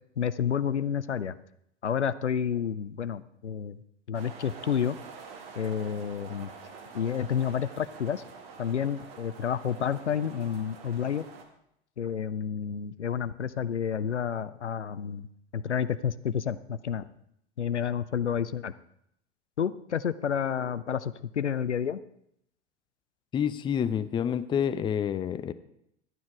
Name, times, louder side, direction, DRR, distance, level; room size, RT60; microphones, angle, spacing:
voice 1, 0.2-1.4 1.8-3.8 4.1-5.0 5.6-6.5 6.9-8.2 8.6-11.3 12.0-15.3 15.5-17.1 17.6-18.7 19.6-22.0, left 8 dB, 85° left, 15 dB, 0.5 m, -30 dB
sound 1, 4.1-11.4, right 5 dB, 60° right, 1.8 m, -47 dB
voice 2, 23.3-25.5, left 8 dB, 15° left, 13 dB, 0.4 m, -28 dB
12.5 x 9.4 x 4.8 m, 0.75 s
figure-of-eight pair, 85°, 34 cm